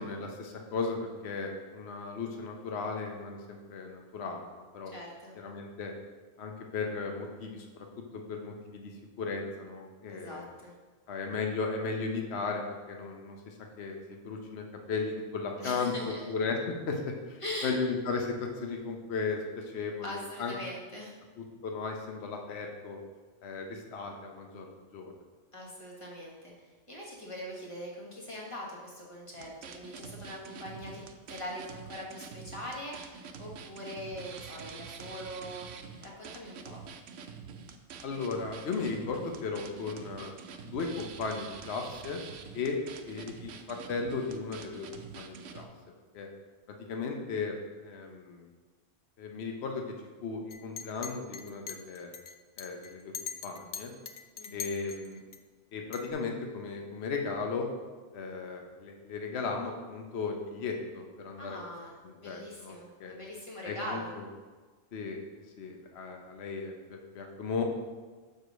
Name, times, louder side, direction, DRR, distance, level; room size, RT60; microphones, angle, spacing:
voice 1, 0.0-4.9 5.4-5.9 6.4-7.9 8.1-8.9 9.2-10.5 11.1-15.9 16.3-16.6 16.9-20.5 21.4-23.0 23.4-24.7 24.9-25.1 38.0-40.3 40.6-42.2 42.5-42.8 43.1-44.9 45.1-45.7 46.1-46.3 46.9-47.5 47.8-48.5 49.2-49.8 50.2-52.1 52.6-53.1 53.4-53.9 54.5-55.2 55.7-57.7 58.1-61.6 62.0-63.1 63.6-64.3 64.9-65.2 65.6-67.6, left 4 dB, 65° left, 2 dB, 1.1 m, -36 dB
voice 2, 4.9-5.3 10.1-10.7 15.6-16.2 17.4-17.8 20.0-21.1 25.5-31.0 31.3-35.7 36.0-36.8 54.4-54.7 61.4-61.9 62.2-64.1, equal, 25° left, -4 dB, 1.4 m, -42 dB
sound 1, 29.3-45.7, right 6 dB, 80° right, 0.9 m, -46 dB
Chink clink, 50.5-55.4 55.9-56.1, left 6 dB, 80° left, 0.3 m, -42 dB
4.9 x 4.6 x 6.1 m, 1.4 s
omnidirectional pair, 1.2 m